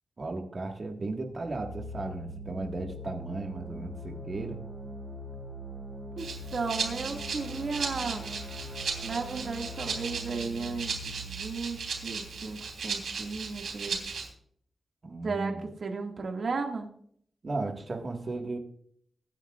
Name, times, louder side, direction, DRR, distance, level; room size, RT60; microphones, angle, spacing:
voice 1, 0.2-4.6 15.0-15.6 17.4-18.6, right 2 dB, 35° right, 2 dB, 1.7 m, -35 dB
sound 1, 1.3-13.1, right 1 dB, 10° right, 6.2 m, -42 dB
voice 2, 6.2-8.3 9.0-14.1 15.2-16.9, right 4 dB, 50° right, 2 dB, 2.0 m, -35 dB
Rattle (instrument), 6.2-14.3, right 5 dB, 85° right, 3.4 m, -36 dB
23.0 x 10.0 x 2.4 m, 0.63 s
wide cardioid pair, 180°, 0 cm